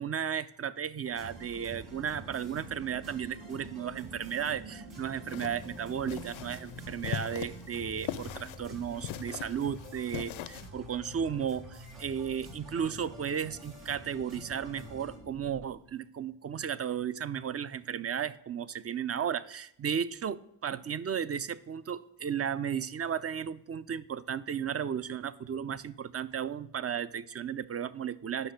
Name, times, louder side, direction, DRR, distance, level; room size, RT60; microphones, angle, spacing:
voice 1, 0.0-28.5, right 8 dB, 30° right, 0.4 m, -34 dB
sound 1, 1.0-15.2, right 1 dB, 75° right, 2.8 m, -49 dB
sound 2, 1.3-15.7, right 1 dB, 50° right, 2.1 m, -50 dB
sound 3, 5.3-10.7, left 12 dB, 70° left, 0.5 m, -41 dB
9.9 x 5.7 x 6.4 m
cardioid pair, 70°, 49 cm